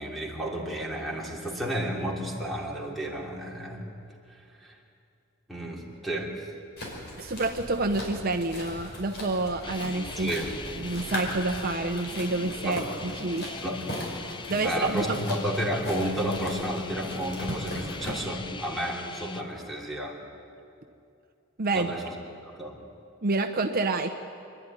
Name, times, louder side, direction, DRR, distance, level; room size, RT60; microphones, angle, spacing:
voice 1, 0.0-3.8 4.3-4.8 5.5-6.4 10.2-10.5 12.6-12.8 13.6-14.2 14.6-20.2 21.7-22.1 22.4-22.8, equal, ahead, -2 dB, 2.9 m, -32 dB
sound 1, 6.8-18.1, left 1 dB, 55° left, 5.1 m, -38 dB
voice 2, 7.2-10.3 10.7-13.6 14.5-15.1 21.6-21.9 23.2-24.1, right 2 dB, 50° right, 6 dB, 0.8 m, -28 dB
sound 2, 9.6-19.4, left 3 dB, 25° left, 0.6 m, -40 dB
26.0 x 11.0 x 9.7 m, 2.5 s
head